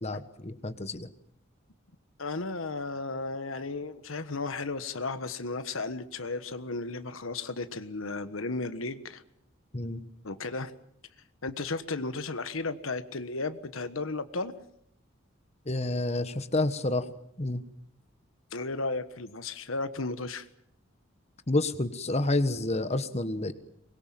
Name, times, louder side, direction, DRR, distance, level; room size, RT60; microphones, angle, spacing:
voice 1, 0.0-1.1 9.7-10.0 15.7-17.1 17.4-17.6 21.5-23.5, left 2 dB, 35° left, 10 dB, 1.4 m, -29 dB
voice 2, 2.2-9.2 10.2-10.7 11.4-14.5 18.5-20.4, left 3 dB, 85° left, 11 dB, 1.4 m, -34 dB
24.0 x 22.0 x 7.7 m, 0.70 s
head